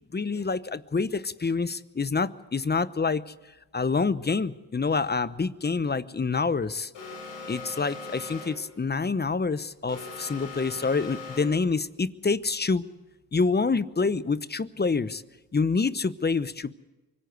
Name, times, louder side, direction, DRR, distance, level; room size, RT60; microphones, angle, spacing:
voice 1, 0.1-3.3 3.7-6.9 7.5-12.8 13.3-15.2 15.5-16.7, left 4 dB, 25° left, 16 dB, 0.9 m, -27 dB
Alarm, 6.9-8.7 9.9-11.7, left 3 dB, 85° left, 6.7 m, -40 dB
24.5 x 16.5 x 8.2 m, 1.1 s
supercardioid pair, 60°, 42 cm